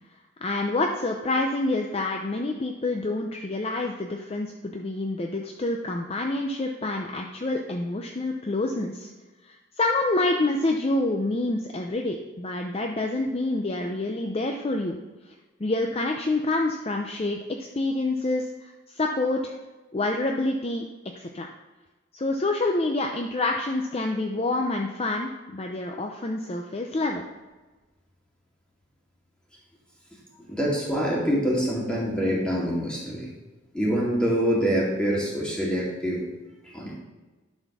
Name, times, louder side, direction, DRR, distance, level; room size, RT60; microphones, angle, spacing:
voice 1, 0.4-9.1 9.5-15.0 15.6-19.5 19.9-20.8 21.2-21.5 22.1-27.2, left 2 dB, 30° left, 2 dB, 0.6 m, -27 dB
voice 2, 30.5-33.3 33.7-36.2 36.7-36.9, equal, 5° left, -5 dB, 2.3 m, -25 dB
11.0 x 4.3 x 6.0 m, 1.2 s
head